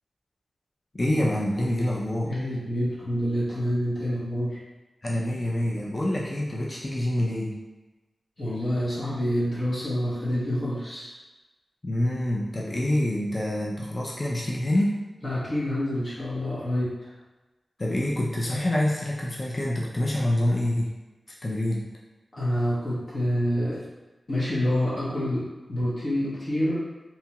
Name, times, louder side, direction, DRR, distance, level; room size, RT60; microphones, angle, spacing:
voice 1, 0.9-2.3 5.0-7.6 11.8-15.0 17.8-20.9 21.4-21.9, left 1 dB, 30° left, -4 dB, 0.4 m, -26 dB
voice 2, 2.3-4.6 8.4-11.1 15.2-16.9 22.3-23.8 24.3-26.8, equal, 45° left, -9 dB, 0.8 m, -27 dB
2.8 x 2.2 x 2.8 m, 1.1 s
wide cardioid pair, 105°, 0 cm